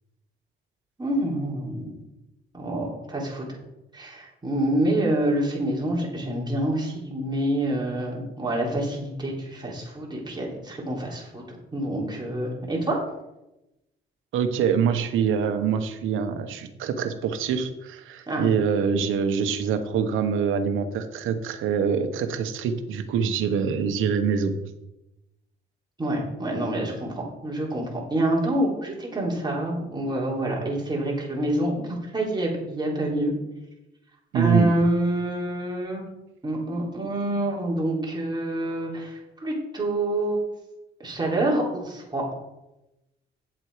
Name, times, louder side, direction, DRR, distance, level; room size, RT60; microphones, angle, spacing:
voice 1, 1.0-1.9 2.5-3.6 3.9-11.4 11.7-13.0 18.3-18.4 26.0-33.3 34.3-36.1 36.4-40.4 41.0-42.2, right 1 dB, 20° right, -3 dB, 3.8 m, -27 dB
voice 2, 14.3-24.5 34.3-34.7, right 7 dB, 85° right, 9 dB, 1.1 m, -25 dB
9.2 x 7.6 x 5.0 m, 0.94 s
cardioid pair, 90°, 20 cm